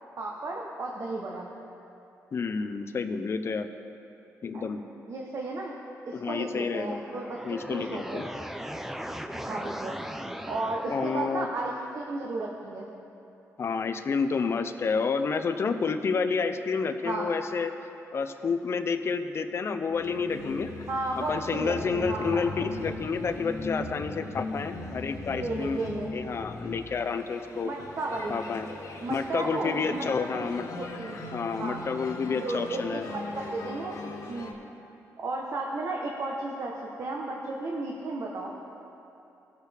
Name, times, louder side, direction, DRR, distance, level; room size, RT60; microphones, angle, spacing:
voice 1, 0.2-1.5 4.5-4.7 5.1-5.7 6.0-8.2 9.5-10.0 10.5-12.9 17.0-17.3 20.9-22.5 25.3-26.1 27.6-28.4 29.0-30.1 30.3-31.2 31.6-31.8 32.4-34.0 34.3-34.5 35.2-36.7 37.0-38.5, right 2 dB, 50° right, -1 dB, 1.0 m, -34 dB
voice 2, 2.3-3.7 4.4-4.8 6.1-7.0 7.4-8.3 10.9-11.5 13.6-17.7 18.1-20.7 21.2-25.8 26.1-27.7 28.3-28.7 29.1-30.7 31.3-33.0, left 5 dB, 45° left, 8 dB, 0.6 m, -29 dB
sound 1, 6.8-11.8, equal, 5° right, 0.5 m, -39 dB
sound 2, 19.9-34.5, left 2 dB, 60° left, 1.3 m, -39 dB
17.5 x 6.5 x 3.5 m, 2.9 s
cardioid pair, 100°, 6 cm